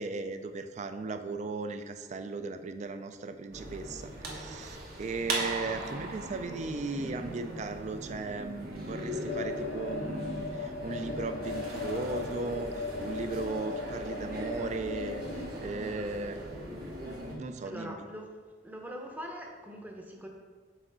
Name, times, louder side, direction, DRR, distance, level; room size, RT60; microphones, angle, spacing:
voice 1, 0.0-16.4 16.7-16.9 17.4-18.0, right 3 dB, 40° right, 8 dB, 0.4 m, -37 dB
sound 1, 3.5-17.4, right 1 dB, 60° right, 1.1 m, -39 dB
sound 2, 9.3-15.5, left 4 dB, 60° left, 0.4 m, -38 dB
voice 2, 17.6-18.3 18.6-20.3, equal, 10° right, 1 dB, 0.7 m, -42 dB
6.2 x 4.5 x 3.9 m, 1.5 s
head